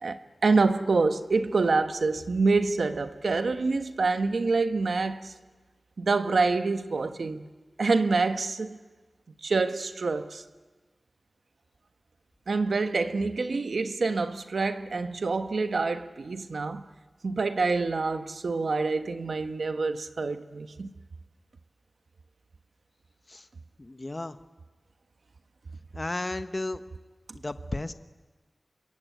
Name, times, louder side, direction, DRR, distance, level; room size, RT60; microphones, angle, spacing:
voice 1, 0.0-5.3 6.0-7.5 7.8-8.8 9.4-10.4 12.5-16.8 17.2-20.9, right 3 dB, 80° right, 1.4 m, -26 dB
voice 2, 23.8-24.4 25.9-26.8 27.3-27.9, left 2 dB, 35° left, 1.2 m, -33 dB
27.0 x 22.5 x 9.4 m
cardioid pair, 50°, 0 cm